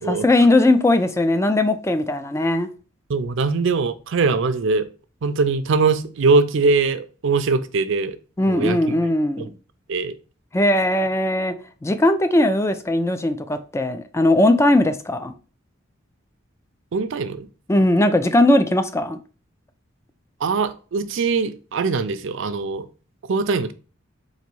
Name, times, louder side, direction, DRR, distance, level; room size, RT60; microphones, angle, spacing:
voice 1, 0.0-2.7 8.4-9.5 10.5-11.5 11.8-15.3 17.7-19.2, left 1 dB, 15° left, 0.4 m, -19 dB
voice 2, 3.1-4.9 5.2-8.2 8.5-9.0 9.4-9.5 9.9-10.1 16.9-17.5 20.4-22.9 23.3-23.7, right 4 dB, 65° right, 0.5 m, -21 dB
3.9 x 2.6 x 4.5 m
head